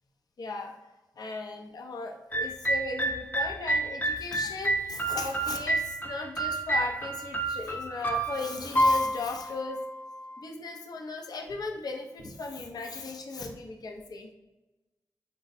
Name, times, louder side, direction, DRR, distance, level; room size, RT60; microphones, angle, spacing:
voice 1, 0.4-0.7 1.2-9.8 10.4-14.3, left 3 dB, 70° left, 3 dB, 0.6 m, -37 dB
sound 1, 2.3-10.3, right 1 dB, 25° left, 0.5 m, -29 dB
4.2 x 2.2 x 4.0 m, 1.1 s
cardioid pair, 60°, 7 cm